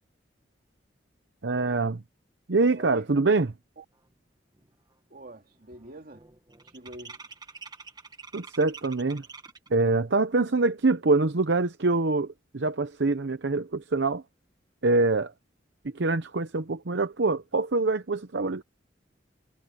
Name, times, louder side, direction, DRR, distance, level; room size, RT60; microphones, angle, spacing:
voice 1, 1.4-2.0 2.5-3.5 8.3-9.2 9.7-14.2 14.8-15.3 15.9-18.6, right 3 dB, 70° right, 0.8 m, -25 dB
voice 2, 2.7-3.1 3.8-3.9 5.1-6.2 6.6-7.3, right 1 dB, 55° right, 2.4 m, -45 dB
sound 1, 4.1-4.2 4.5-4.9 5.2-9.8, right 4 dB, 25° right, 1.6 m, -47 dB
head